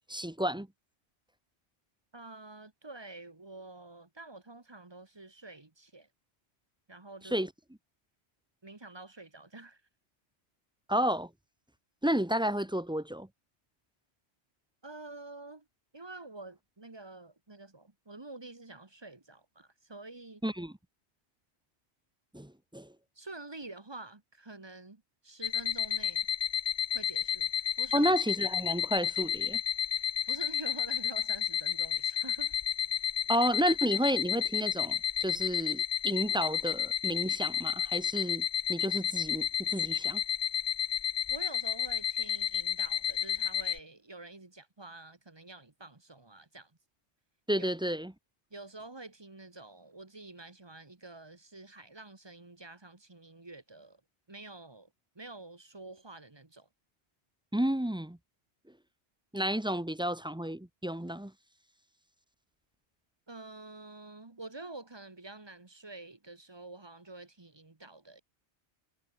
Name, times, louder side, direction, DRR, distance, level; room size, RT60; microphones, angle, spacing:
voice 1, 0.1-0.7 7.3-7.5 10.9-11.3 12.0-13.3 20.4-20.7 22.3-22.9 27.9-29.6 33.3-40.2 47.5-48.1 57.5-58.2 59.3-61.3, right 1 dB, 5° right, 0.5 m, -31 dB
voice 2, 2.1-6.1 6.9-7.4 8.6-9.8 14.8-15.7 15.9-20.4 23.1-26.3 26.9-27.5 27.8-28.1 30.3-32.5 41.3-46.7 47.6-47.7 48.5-54.0 54.3-56.7 63.3-68.2, right 2 dB, 25° right, 1.3 m, -48 dB
sound 1, 25.4-43.8, left 9 dB, 55° left, 0.4 m, -31 dB
omnidirectional pair, 1.2 m